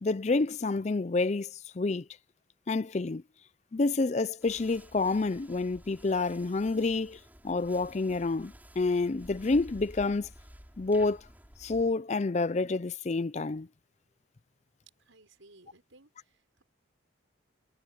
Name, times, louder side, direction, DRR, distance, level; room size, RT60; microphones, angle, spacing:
voice 1, 0.0-2.1 2.7-3.2 3.7-10.3 10.8-11.2 11.6-13.7, left 3 dB, 35° left, 0.4 m, -28 dB
sound 1, 4.4-11.9, equal, 10° right, 6.9 m, -52 dB
voice 2, 15.0-16.6, right 2 dB, 85° right, 5.8 m, -59 dB
head